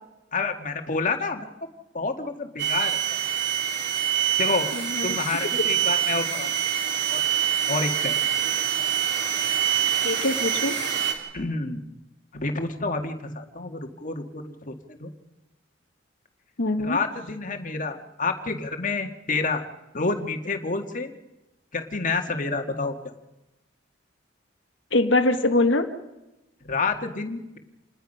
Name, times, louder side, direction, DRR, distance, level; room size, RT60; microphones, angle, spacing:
voice 1, 0.3-1.5 1.9-3.0 4.4-4.7 5.0-6.5 7.1-7.2 7.7-8.2 11.3-11.8 12.3-15.1 16.8-19.6 19.9-21.1 21.7-23.0 26.6-27.6, left 3 dB, 45° left, 5 dB, 1.8 m, -28 dB
sound 1, 2.6-11.1, right 9 dB, 65° right, 3.9 m, -25 dB
voice 2, 4.7-5.2 10.0-10.7 16.6-17.0 24.9-25.9, left 2 dB, 75° left, 6 dB, 1.4 m, -23 dB
27.5 x 20.0 x 5.6 m, 0.98 s
head